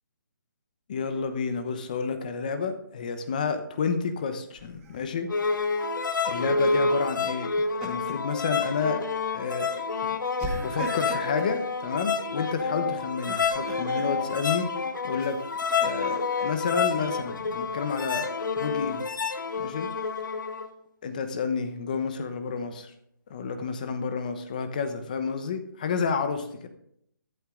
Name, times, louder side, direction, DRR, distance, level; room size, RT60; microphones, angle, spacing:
voice 1, 0.9-5.3 6.3-7.5 7.8-9.0 9.3-10.2 10.6-14.7 15.0-15.4 15.8-18.3 18.6-19.1 19.6-19.9 21.0-22.9 23.3-26.7, left 5 dB, 25° left, 9 dB, 1.0 m, -30 dB
Laughter, 4.5-5.1 7.4-8.3 8.7-8.9 10.4-11.5 13.1-14.1 15.2-16.4, right 3 dB, 10° right, 1.0 m, -39 dB
sound 1, 5.3-20.7, left 4 dB, 70° left, 1.3 m, -29 dB
13.5 x 11.5 x 3.8 m, 0.71 s
hypercardioid pair, 175°, 11 cm